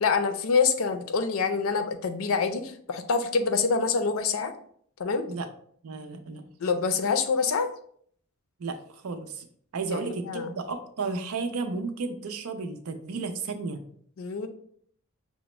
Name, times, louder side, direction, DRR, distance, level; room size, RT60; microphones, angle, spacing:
voice 1, 0.0-4.5 5.0-5.3 6.6-7.7 9.9-10.5 14.2-14.5, left 5 dB, 65° left, 8 dB, 0.5 m, -26 dB
voice 2, 5.8-6.4 8.6-9.4 9.7-13.8, right 4 dB, 75° right, 7 dB, 0.5 m, -33 dB
5.9 x 2.1 x 3.1 m, 0.62 s
head